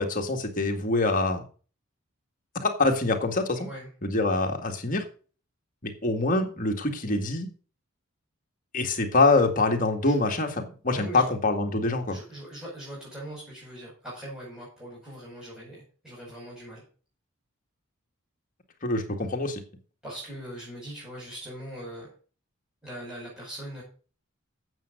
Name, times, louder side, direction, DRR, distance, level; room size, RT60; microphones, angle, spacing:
voice 1, 0.0-1.4 2.6-3.6 4.0-5.0 5.8-7.5 8.7-10.5 10.8-12.2 18.8-19.6, left 3 dB, 40° left, 3 dB, 1.9 m, -25 dB
voice 2, 3.5-3.9 10.0-10.2 10.9-11.3 12.1-16.8 20.0-22.1 22.8-23.8, right 1 dB, 5° right, -6 dB, 5.1 m, -41 dB
9.1 x 7.5 x 6.5 m, 0.38 s
head